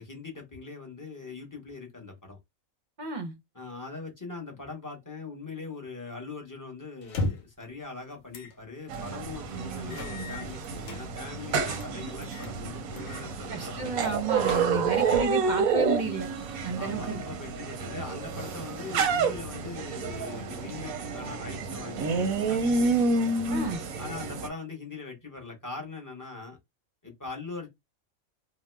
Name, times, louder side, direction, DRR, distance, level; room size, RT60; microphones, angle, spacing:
voice 1, 0.0-2.4 3.5-14.1 16.8-22.8 24.0-26.6 27.0-27.7, left 4 dB, 15° left, 0.7 m, -41 dB
voice 2, 3.0-3.3 9.5-10.0 13.5-16.3 16.6-17.2 23.5-23.8, right 3 dB, 45° right, 0.6 m, -31 dB
sound 1, 7.0-7.6 8.3-8.6 9.0-9.1 9.9-11.0 11.5-11.9 12.2-12.5 13.0-13.3 13.6-13.7 14.2-15.0, left 2 dB, 80° left, 1.1 m, -36 dB
sound 2, 8.9-24.5, right 4 dB, 90° right, 1.1 m, -29 dB
2.9 x 2.1 x 3.2 m
omnidirectional pair, 1.4 m